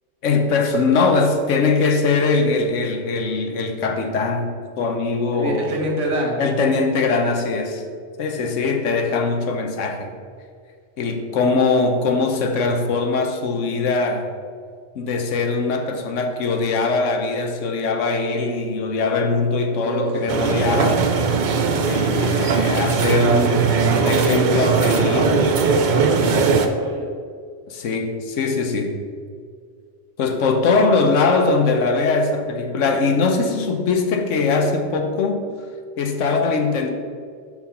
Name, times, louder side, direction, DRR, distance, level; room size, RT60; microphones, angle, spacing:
voice 1, 0.2-5.7 6.4-7.8 8.2-10.1 11.0-14.3 14.9-21.1 21.8-25.4 26.1-26.6 27.7-28.9 30.2-35.4 36.0-36.9, left 4 dB, 90° left, 5 dB, 1.1 m, -21 dB
voice 2, 5.4-6.4 19.7-20.6 26.1-27.1, right 1 dB, 80° right, -1 dB, 1.5 m, -27 dB
sound 1, 20.3-26.7, right 5 dB, 55° right, 0.6 m, -19 dB
5.9 x 4.5 x 5.6 m, 2.1 s
omnidirectional pair, 1.2 m